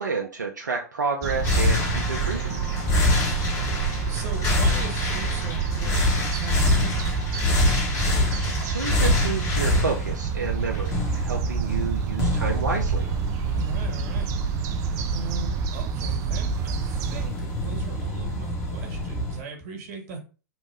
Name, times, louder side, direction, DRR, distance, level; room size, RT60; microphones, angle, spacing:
voice 1, 0.0-2.6 8.6-13.1, right 4 dB, 90° right, 0.5 m, -30 dB
sound 1, 1.2-11.7, left 3 dB, 70° left, 0.8 m, -41 dB
sound 2, 1.2-17.3, right 6 dB, 35° right, 0.4 m, -28 dB
sound 3, 1.4-19.4, left 1 dB, 30° left, 1.0 m, -27 dB
voice 2, 3.0-7.2 13.5-14.4 15.1-20.2, right 4 dB, 55° right, 1.3 m, -38 dB
3.0 x 2.1 x 3.5 m
hypercardioid pair, 105°, 9 cm